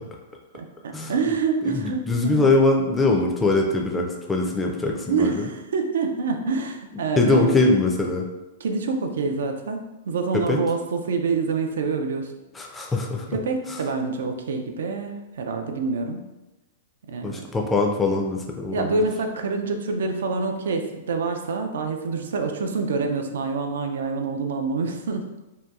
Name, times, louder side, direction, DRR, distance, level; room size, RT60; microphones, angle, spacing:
voice 1, 0.5-2.5 5.1-7.6 8.6-9.8 10.1-12.3 13.3-16.2 17.1-17.4 18.7-25.3, right 4 dB, 80° right, 5 dB, 0.3 m, -26 dB
voice 2, 1.6-5.5 7.2-8.3 10.5-10.6 12.5-13.4 13.7-13.8 17.2-19.1, left 3 dB, 10° left, 0 dB, 0.3 m, -22 dB
2.7 x 2.2 x 2.3 m, 1.0 s
hypercardioid pair, 130°, 0 cm